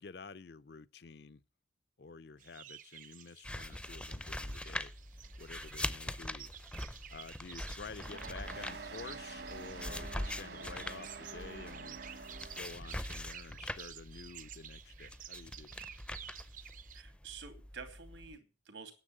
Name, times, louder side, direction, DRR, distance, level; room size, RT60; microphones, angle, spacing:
voice 1, 0.0-1.4 2.0-4.9 5.4-6.5 7.1-12.0 12.6-15.8, left 4 dB, 60° left, 0.5 m, -50 dB
sound 1, 2.4-17.0, right 10 dB, 45° right, 0.6 m, -52 dB
sound 2, 3.4-18.4, left 1 dB, 5° left, 0.5 m, -43 dB
sound 3, 8.0-13.1, right 3 dB, 60° right, 1.6 m, -47 dB
voice 2, 16.9-18.9, right 5 dB, 75° right, 3.0 m, -49 dB
10.0 x 7.3 x 8.8 m
head